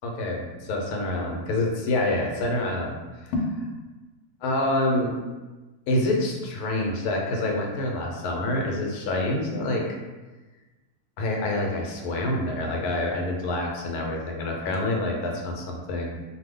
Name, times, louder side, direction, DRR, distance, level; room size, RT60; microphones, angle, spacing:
voice 1, 0.0-3.0 3.2-3.7 4.4-5.1 5.9-9.8 11.2-16.2, left 1 dB, 85° left, 0 dB, 1.1 m, -27 dB
2.6 x 2.1 x 3.5 m, 1.2 s
omnidirectional pair, 1.6 m